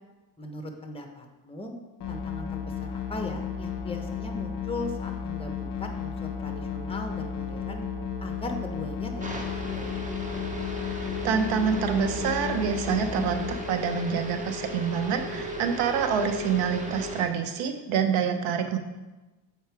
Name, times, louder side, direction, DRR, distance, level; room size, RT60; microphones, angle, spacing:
voice 1, 0.4-1.7 2.1-7.8 8.2-9.1 9.4-10.0, left 2 dB, 10° left, 4 dB, 1.1 m, -38 dB
sound 1, 2.0-13.6, left 7 dB, 40° left, 1.1 m, -34 dB
sound 2, 6.5-16.5, right 15 dB, 55° right, 0.9 m, -47 dB
sound 3, 9.2-17.2, left 2 dB, 15° right, 1.1 m, -36 dB
voice 2, 10.9-18.8, right 7 dB, 85° right, 7 dB, 1.0 m, -27 dB
7.6 x 4.5 x 4.7 m, 1.1 s
cardioid pair, 95°, 49 cm